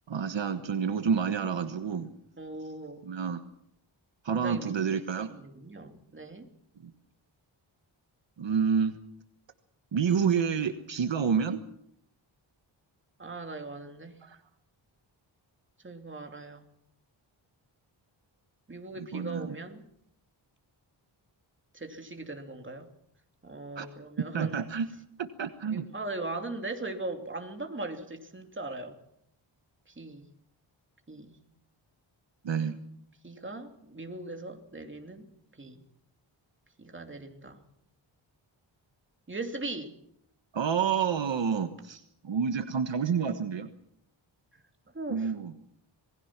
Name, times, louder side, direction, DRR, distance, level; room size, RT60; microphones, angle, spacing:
voice 1, 0.1-2.1 3.0-3.4 4.2-5.3 6.8-6.9 8.4-9.0 9.9-11.6 14.2-14.4 19.0-19.5 23.7-23.9 24.3-24.9 25.2-25.9 32.4-32.8 40.5-43.7 45.1-45.5, right 6 dB, 65° right, 8 dB, 1.4 m, -29 dB
voice 2, 2.4-3.0 4.3-6.5 13.2-14.2 15.8-16.7 18.7-19.8 21.7-22.9 23.4-24.6 25.7-29.0 29.9-30.3 31.1-31.4 33.2-35.3 35.5-35.8 36.8-37.6 39.3-40.0 44.5-44.6 44.9-45.3, right 2 dB, 25° right, 4 dB, 2.8 m, -39 dB
27.0 x 20.5 x 6.0 m, 0.73 s
wide cardioid pair, 135°, 48 cm